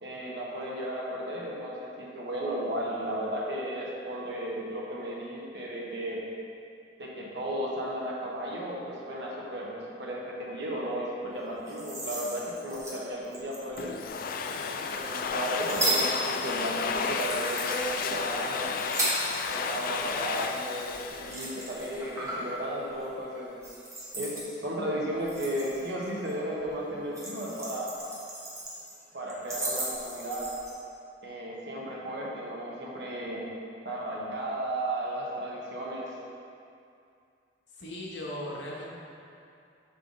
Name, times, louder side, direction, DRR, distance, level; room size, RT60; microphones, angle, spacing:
voice 1, 0.0-6.2 7.0-14.0 14.7-18.8 19.5-23.6 24.1-27.9 29.1-30.5 31.2-33.4 33.8-36.1, right 1 dB, 65° right, -4 dB, 1.2 m, -34 dB
sound 1, 11.5-14.1 14.7-19.7 20.0-22.6 22.9-23.2 23.6-24.5 25.0-26.3 26.6-28.9 29.3-30.7, right 2 dB, 15° right, 1.1 m, -36 dB
Domestic sounds home sounds, 13.8-22.2, left 5 dB, 50° left, 0.3 m, -32 dB
voice 2, 37.7-38.9, left 1 dB, 70° left, -4 dB, 1.1 m, -38 dB
5.6 x 5.4 x 3.8 m, 2.5 s
head